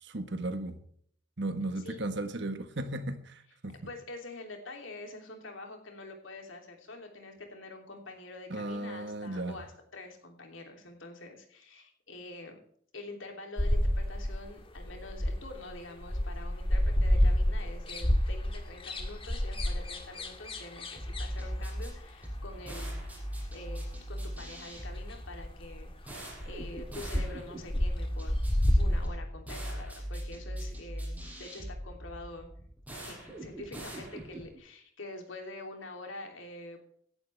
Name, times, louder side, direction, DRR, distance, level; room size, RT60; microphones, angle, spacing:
voice 1, 0.0-0.8 1.4-3.8 8.5-9.6, right 2 dB, 65° right, 9 dB, 1.4 m, -35 dB
voice 2, 3.9-12.6 12.9-22.9 23.5-28.3 28.7-32.5 32.9-36.8, left 2 dB, 85° left, 3 dB, 3.1 m, -46 dB
sound 1, 13.6-15.7 16.0-22.0 24.3-24.4 24.8-24.9 25.1-25.2 25.4-25.8 26.1-27.4 27.6-29.1, left 1 dB, 30° left, 1.6 m, -29 dB
sound 2, 21.0-34.6, equal, 10° right, 5.5 m, -40 dB
17.0 x 11.0 x 3.5 m, 0.63 s
head